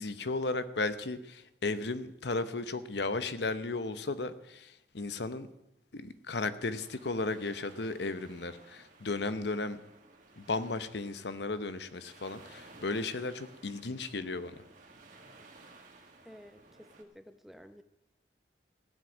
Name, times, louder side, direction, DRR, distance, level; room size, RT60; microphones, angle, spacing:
voice 1, 0.0-5.5 5.9-9.8 10.4-14.5, left 3 dB, 75° left, 12 dB, 0.9 m, -35 dB
sound 1, 6.7-17.0, right 3 dB, 45° right, 2.0 m, -57 dB
voice 2, 16.2-17.8, equal, ahead, 9 dB, 0.7 m, -52 dB
16.0 x 7.9 x 9.3 m, 0.90 s
head